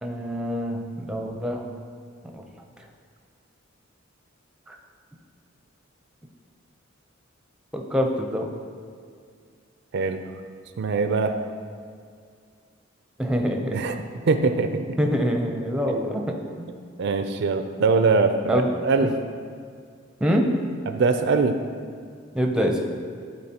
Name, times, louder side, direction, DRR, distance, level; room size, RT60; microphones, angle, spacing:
voice 1, 0.0-1.7 2.3-2.4 4.7-4.8 7.7-8.5 13.2-13.8 15.0-16.7 18.5-18.7 20.2-20.5 22.3-22.8, equal, 5° right, 2 dB, 0.5 m, -25 dB
voice 2, 10.8-11.4 13.7-14.0 14.3-15.0 17.0-19.2 20.9-21.6, right 4 dB, 60° right, 8 dB, 0.4 m, -22 dB
11.5 x 4.1 x 2.8 m, 2.2 s
head